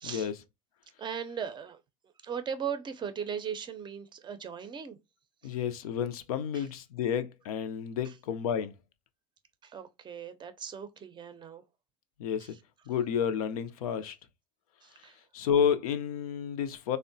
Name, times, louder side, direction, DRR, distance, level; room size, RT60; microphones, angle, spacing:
voice 1, 0.0-0.3 5.4-8.7 12.2-12.5 12.9-14.1 15.3-17.0, left 8 dB, 75° left, 0.5 m, -30 dB
voice 2, 1.0-1.8 2.2-5.0 6.5-6.6 9.6-11.6 14.8-15.1, right 7 dB, 25° right, 0.5 m, -38 dB
3.4 x 2.1 x 2.6 m
hypercardioid pair, 85°, 19 cm